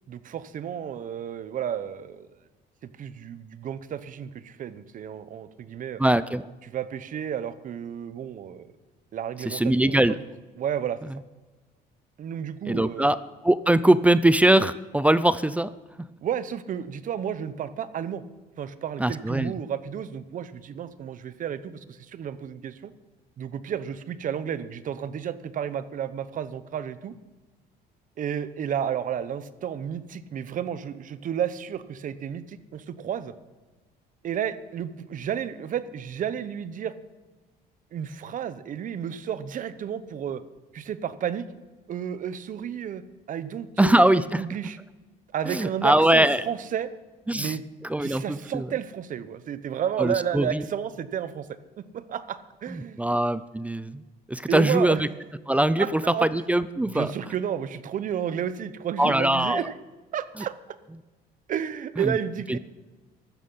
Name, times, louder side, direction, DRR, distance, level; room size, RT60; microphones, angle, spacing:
voice 1, 0.1-2.3 2.8-6.0 6.6-8.7 9.1-10.0 10.6-11.0 12.2-13.1 16.2-18.2 18.6-22.9 23.4-27.1 28.2-33.3 34.2-36.9 37.9-40.4 40.7-41.5 41.9-43.0 43.3-44.0 44.4-44.8 45.3-46.9 47.3-47.6 48.0-51.5 51.8-53.0 54.5-55.0 55.8-56.3 56.8-59.7 60.1-60.5 61.5-62.6, right 9 dB, 50° right, 14 dB, 1.0 m, -32 dB
voice 2, 6.0-6.5 9.5-10.1 12.7-13.2 13.4-15.7 19.0-19.6 43.8-44.4 45.5-46.5 47.3-47.6 47.8-48.7 50.0-50.6 52.7-54.0 54.3-55.1 55.5-57.1 59.0-59.6 62.0-62.2 62.5-62.6, right 1 dB, 10° right, 16 dB, 0.5 m, -22 dB
15.5 x 12.0 x 5.6 m, 1.2 s
cardioid pair, 110°, 17 cm